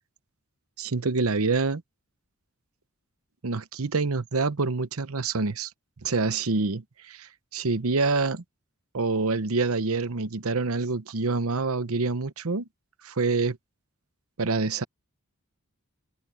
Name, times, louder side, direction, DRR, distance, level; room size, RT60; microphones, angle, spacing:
voice 1, 0.8-1.8 3.4-5.7 6.0-8.4 8.9-12.7 13.0-13.6 14.4-14.8, right 3 dB, 70° right, 0.9 m, -26 dB
open air
head